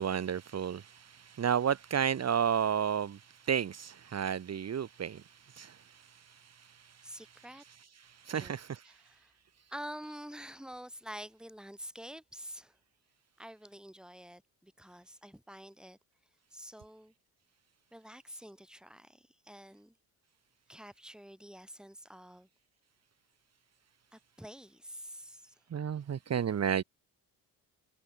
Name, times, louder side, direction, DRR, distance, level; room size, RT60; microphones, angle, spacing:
voice 1, 0.0-7.2 8.0-9.0 25.7-26.8, right 8 dB, 40° right, 2.1 m, -33 dB
voice 2, 7.0-7.6 8.3-8.6 8.8-9.3 9.7-12.8 13.4-16.0 16.5-17.1 17.9-19.9 20.7-22.5 24.1-25.5, equal, ahead, 7.9 m, -48 dB
cardioid pair, 165°, 39 cm